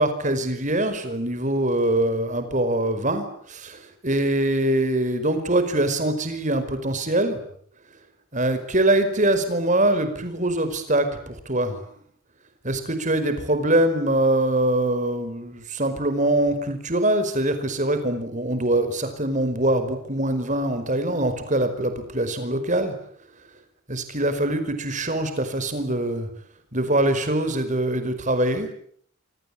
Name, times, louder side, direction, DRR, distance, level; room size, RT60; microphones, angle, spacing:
voice 1, 0.0-7.4 8.3-11.8 12.6-22.9 23.9-26.3 26.7-28.7, right 1 dB, 35° right, 9 dB, 5.1 m, -23 dB
26.0 x 26.0 x 8.6 m, 0.63 s
head